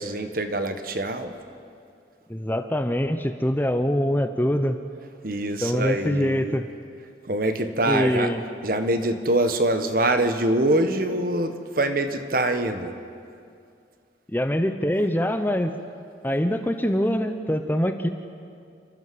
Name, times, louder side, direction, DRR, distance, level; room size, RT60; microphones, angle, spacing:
voice 1, 0.0-1.3 5.2-6.6 7.2-8.3 8.6-12.9, right 1 dB, 50° right, 8 dB, 1.4 m, -24 dB
voice 2, 2.3-4.8 5.6-6.7 7.9-8.4 14.3-15.8 16.2-18.1, equal, 10° left, 8 dB, 0.7 m, -24 dB
29.5 x 13.0 x 7.8 m, 2.4 s
head